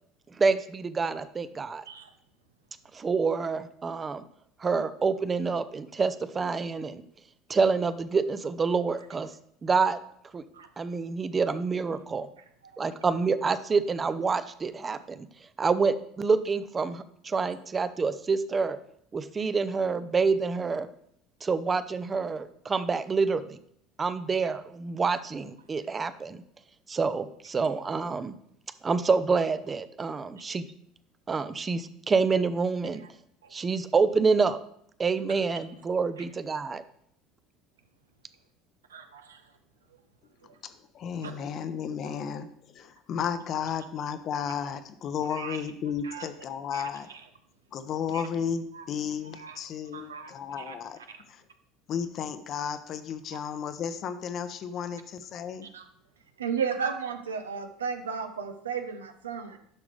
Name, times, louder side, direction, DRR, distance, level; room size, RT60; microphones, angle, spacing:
voice 1, 0.4-1.8 2.9-4.2 4.6-7.0 7.5-9.3 9.6-10.0 10.3-10.4 10.8-12.3 12.8-15.3 15.6-18.8 19.1-20.9 21.4-23.6 24.0-26.4 26.9-28.3 28.8-30.7 31.3-33.0 33.5-34.6 35.0-36.8, right 4 dB, 25° right, 14 dB, 0.6 m, -27 dB
voice 2, 38.9-39.4 41.2-41.3 45.3-45.6 46.0-46.3 46.7-47.2 48.1-48.2 48.7-48.9 49.3-49.6 49.9-50.7 51.1-51.2 55.7-55.9 56.4-59.6, right 6 dB, 85° right, 7 dB, 0.7 m, -35 dB
voice 3, 40.6-42.5 42.7-47.1 47.7-51.0 51.3-51.4 51.9-55.7, left 7 dB, 50° left, 11 dB, 0.7 m, -33 dB
10.5 x 6.0 x 3.3 m, 0.69 s
hypercardioid pair, 70°, 0 cm